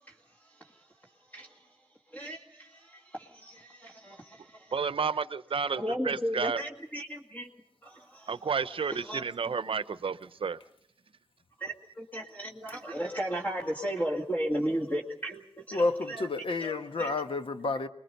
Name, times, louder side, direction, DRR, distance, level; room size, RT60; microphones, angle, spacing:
voice 1, 0.4-0.8 1.3-1.6 2.1-4.7 5.8-7.5 7.8-9.5 11.6-16.3 16.6-17.1, equal, 15° left, 2.1 m, -35 dB
voice 2, 4.7-6.6 8.3-10.6, right 5 dB, 70° right, 0.7 m, -31 dB
voice 3, 15.7-17.9, left 3 dB, 65° left, 1.2 m, -30 dB
25.5 x 21.5 x 5.4 m
wide cardioid pair, 75°, 10 cm